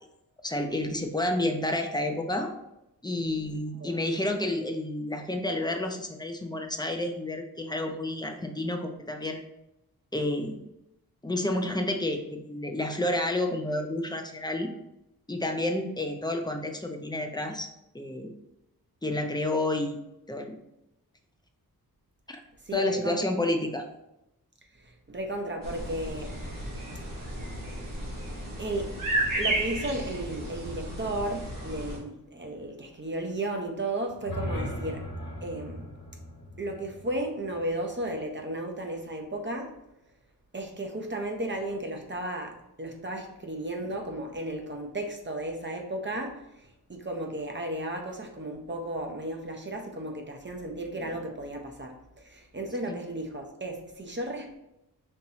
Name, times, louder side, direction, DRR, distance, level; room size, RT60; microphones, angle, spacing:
voice 1, 0.4-2.5 3.0-9.4 10.1-10.6 11.2-14.7 15.3-17.7 17.9-18.3 19.0-20.0 20.3-20.6 22.3-22.4 22.7-23.8 52.9-53.0, left 1 dB, 10° left, 3 dB, 0.5 m, -30 dB
voice 2, 3.2-3.5 3.8-3.9 22.6-23.3 24.7-26.3 27.9-28.1 28.6-29.0 29.4-35.1 35.4-35.8 36.6-39.7 40.5-54.6, right 1 dB, 30° right, 2 dB, 0.7 m, -34 dB
sound 1, 25.6-32.0, right 1 dB, 60° right, 1.3 m, -33 dB
sound 2, 34.1-38.2, equal, 55° left, 1.2 m, -38 dB
5.4 x 2.9 x 2.8 m, 0.88 s
wide cardioid pair, 115°, 37 cm